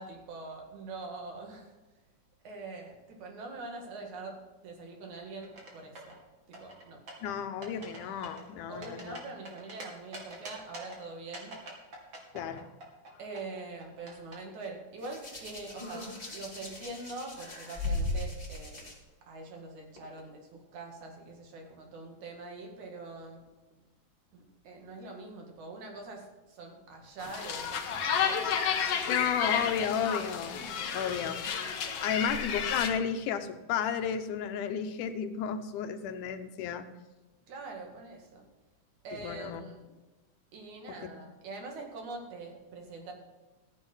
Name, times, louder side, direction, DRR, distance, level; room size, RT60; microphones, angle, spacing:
voice 1, 0.0-1.7 2.4-6.1 6.5-7.0 8.7-11.6 13.2-16.0 16.3-18.8 19.3-23.4 24.3-28.4 29.0-29.1 32.0-32.1 37.5-38.4 39.0-39.9 40.5-43.1, right 3 dB, 75° right, 2 dB, 3.4 m, -44 dB
sound 1, 5.4-6.2 6.5-7.3 7.6-8.0 8.2-9.8 10.1-11.0 11.3-13.1 13.3-14.4, right 2 dB, 40° right, 2.8 m, -44 dB
voice 2, 7.2-9.2 12.3-12.7 29.1-31.5 31.9-36.9 39.1-39.6 40.9-41.0, left 8 dB, 90° left, 8 dB, 2.4 m, -33 dB
Hands, 15.0-18.9 20.0-20.2, left 2 dB, 15° left, 2.7 m, -37 dB
sound 2, 27.2-32.9, left 7 dB, 60° left, 1.9 m, -31 dB
15.0 x 8.1 x 5.6 m, 1.2 s
omnidirectional pair, 3.5 m